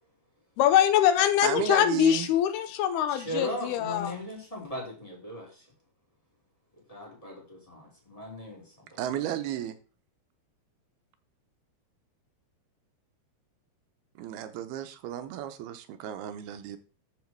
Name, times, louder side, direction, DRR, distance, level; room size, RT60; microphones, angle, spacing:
voice 1, 0.6-4.1, left 11 dB, 80° left, 2.8 m, -23 dB
voice 2, 1.4-2.3 9.0-9.8 14.2-16.8, right 11 dB, 80° right, 2.8 m, -33 dB
voice 3, 3.1-5.7 6.9-9.0, left 1 dB, 10° left, 3.9 m, -38 dB
13.5 x 5.9 x 4.7 m
omnidirectional pair, 4.6 m